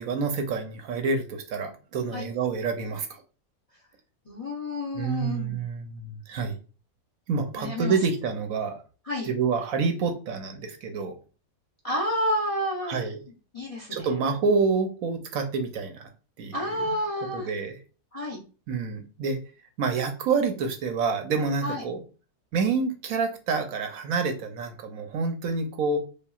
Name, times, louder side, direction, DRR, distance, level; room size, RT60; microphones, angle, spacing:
voice 1, 0.0-3.2 4.9-6.6 7.3-8.8 9.2-11.1 12.8-13.2 13.9-16.1 16.4-16.9 17.3-17.8 18.7-19.4 19.8-22.0 22.5-26.0, right 4 dB, 65° right, 6 dB, 1.0 m, -28 dB
voice 2, 4.3-5.6 7.5-8.0 9.1-9.3 11.8-13.0 13.5-14.1 16.5-17.5 18.1-18.4 21.6-21.8, left 1 dB, 40° left, -2 dB, 0.5 m, -30 dB
5.3 x 2.3 x 2.3 m, 0.36 s
omnidirectional pair, 1.7 m